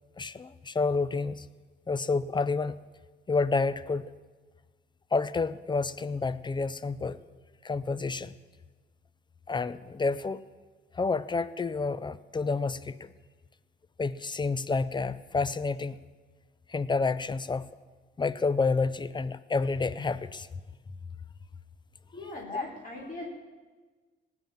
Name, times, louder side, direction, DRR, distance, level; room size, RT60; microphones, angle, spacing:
voice 1, 0.2-1.5 1.9-2.8 3.3-4.1 5.1-7.2 7.6-8.3 9.5-10.4 10.9-13.1 14.0-16.0 16.7-17.7 18.2-20.5 22.5-22.6, left 4 dB, 25° left, 16 dB, 0.5 m, -29 dB
voice 2, 22.1-23.3, left 2 dB, 40° left, -3 dB, 3.9 m, -40 dB
18.0 x 7.7 x 7.2 m, 1.4 s
cardioid pair, 90°, 20 cm